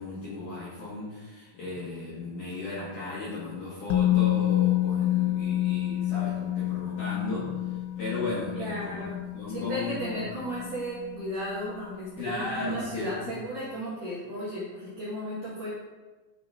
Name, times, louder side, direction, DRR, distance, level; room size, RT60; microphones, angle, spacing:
voice 1, 0.0-10.2 12.2-13.3, left 3 dB, 65° left, -8 dB, 2.0 m, -36 dB
Musical instrument, 3.9-11.8 12.1-12.3, left 14 dB, 80° left, 3.0 m, -28 dB
voice 2, 8.5-9.1 9.5-15.7, equal, 70° right, -8 dB, 2.0 m, -35 dB
10.0 x 4.0 x 4.9 m, 1.2 s
omnidirectional pair, 5.9 m